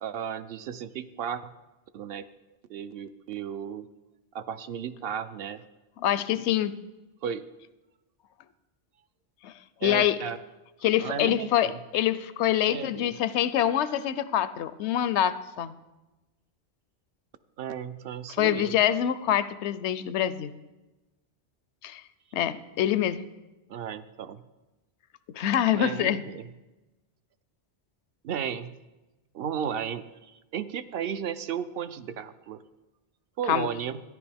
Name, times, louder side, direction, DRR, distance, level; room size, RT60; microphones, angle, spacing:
voice 1, 0.0-1.5 1.9-2.2 2.7-3.8 4.3-5.6 7.2-7.4 9.8-10.4 11.0-11.8 12.7-13.2 17.6-18.7 23.7-24.4 25.7-26.5 28.2-28.8 29.3-32.6 33.4-34.0, right 8 dB, 65° right, 12 dB, 0.7 m, -34 dB
voice 2, 6.0-6.7 9.4-9.5 9.8-10.2 10.8-15.7 18.4-20.5 21.8-22.0 22.3-23.2 25.3-26.2 33.5-33.7, left 11 dB, 85° left, 15 dB, 0.9 m, -25 dB
14.0 x 10.5 x 3.4 m, 1.1 s
omnidirectional pair, 1.1 m